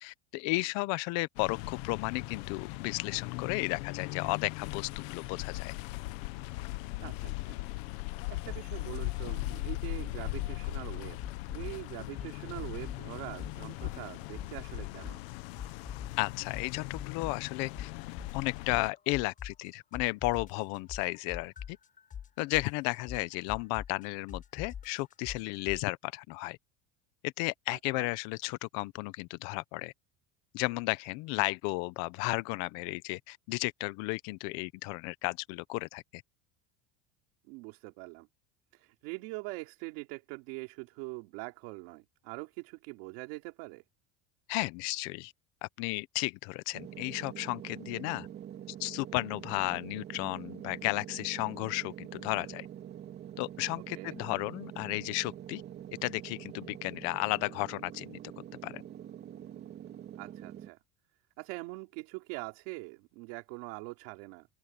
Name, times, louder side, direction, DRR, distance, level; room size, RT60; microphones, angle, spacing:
voice 1, 0.0-5.7 16.2-17.9 18.3-21.8 22.4-26.6 27.2-29.9 30.5-36.2 44.5-45.3 45.6-48.3 48.8-52.7 53.4-55.6 56.0-58.2 58.6-58.8, left 23 dB, 55° left, 0.9 m, -33 dB
sound 1, 1.4-18.9, left 21 dB, 75° left, 1.2 m, -39 dB
voice 2, 7.0-7.6 8.3-11.2 11.5-15.2 27.7-28.1 37.5-38.3 38.7-43.8 53.9-54.2 60.2-60.8 61.4-64.5, right 26 dB, 70° right, 3.4 m, -43 dB
sound 2, 8.5-8.8 9.0-10.9 11.2-13.1 13.4-15.3 15.6-19.7 19.9-25.8, left 8 dB, 25° left, 7.5 m, -43 dB
sound 3, 46.7-60.7, right 10 dB, 30° right, 3.1 m, -45 dB
open air
cardioid pair, 175°, 32 cm